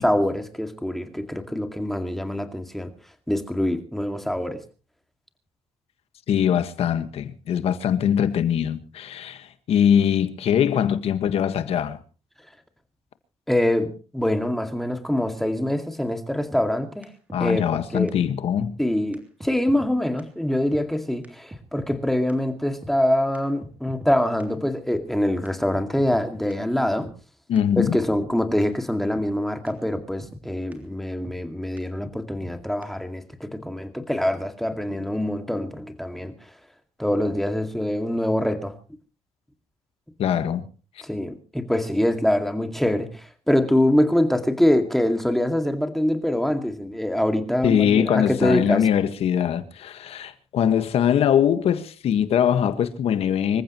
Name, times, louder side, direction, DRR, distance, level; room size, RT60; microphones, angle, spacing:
voice 1, 0.0-2.9 3.3-4.6 13.5-17.1 17.4-18.1 18.8-27.1 27.8-36.3 37.0-38.7 41.0-48.8, left 1 dB, ahead, 2.2 m, -24 dB
voice 2, 6.3-12.0 17.3-18.7 27.5-28.0 40.2-40.6 47.6-53.6, left 9 dB, 70° left, 1.6 m, -22 dB
sound 1, 16.5-16.6 17.0-17.1 17.3-17.8 18.1-18.2 18.6-18.7 19.1-19.2 19.4-19.9 20.2-20.3 20.7-20.8 21.2-21.3 21.5-22.0 22.3-22.4 22.8-22.9 23.3-24.1 24.4-24.5 24.9-25.0 25.5-25.6 25.7-26.2 26.5-26.6 27.0-27.1 27.6-27.7 27.8-28.3 28.6-28.7 29.1-29.3 29.7-29.8 29.9-30.4 30.7-30.8 31.2-31.4 31.8-31.9 32.0-32.5 32.8-32.9, equal, 15° right, 3.2 m, -41 dB
26.0 x 15.0 x 3.1 m
cardioid pair, 110°, 11 cm